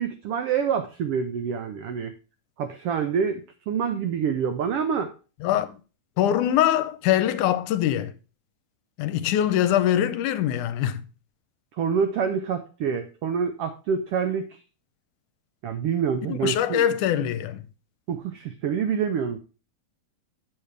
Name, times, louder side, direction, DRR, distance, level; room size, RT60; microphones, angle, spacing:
voice 1, 0.0-2.1 2.6-5.1 11.8-14.6 15.6-16.8 18.1-19.4, right 7 dB, 85° right, 1.3 m, -26 dB
voice 2, 5.4-5.8 6.2-8.2 9.0-11.0 16.3-17.6, left 11 dB, 80° left, 2.1 m, -23 dB
8.6 x 7.1 x 3.3 m
omnidirectional pair, 3.6 m